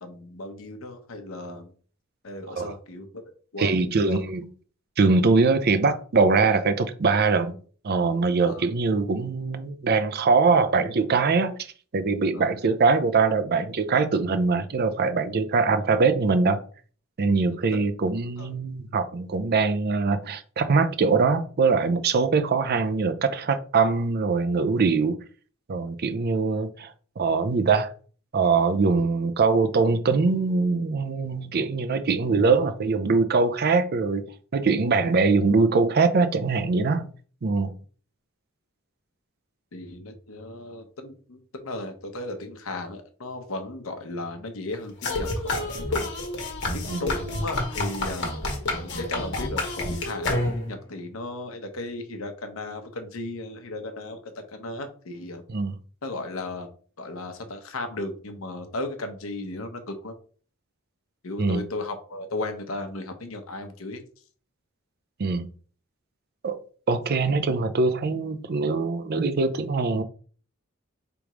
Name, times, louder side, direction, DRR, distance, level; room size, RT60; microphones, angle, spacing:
voice 1, 0.0-1.7 2.2-3.2 3.5-4.2 8.4-8.7 12.3-12.5 17.5-17.9 18.4-18.5 39.7-46.1 46.7-48.3 48.8-55.4 56.0-56.7 57.0-60.1 61.2-64.0, left 2 dB, 80° left, 0.9 m, -36 dB
voice 2, 3.6-4.4 5.0-7.6 7.8-11.6 11.9-16.6 17.2-25.2 25.7-27.9 28.3-34.2 34.5-37.1 37.4-37.7 46.9-47.0 55.5-55.7 61.4-61.6 65.2-65.5 66.4-66.6 66.9-70.0, right 4 dB, 50° right, 0.5 m, -22 dB
sound 1, 45.0-50.8, left 2 dB, 60° left, 1.3 m, -29 dB
3.5 x 3.0 x 4.8 m
head